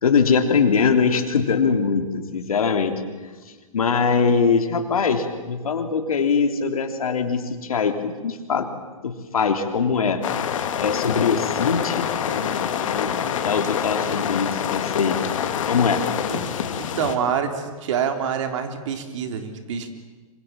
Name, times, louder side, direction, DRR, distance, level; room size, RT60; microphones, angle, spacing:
voice 1, 0.0-2.9 3.7-8.7 9.0-10.2 10.8-15.2 15.7-16.0, left 5 dB, 80° left, 6 dB, 3.4 m, -22 dB
sound 1, 10.2-17.2, left 8 dB, 60° left, 2.7 m, -26 dB
voice 2, 16.7-19.9, right 7 dB, 55° right, 6 dB, 3.7 m, -26 dB
25.5 x 25.5 x 7.6 m, 1.3 s
hypercardioid pair, 130°, 18 cm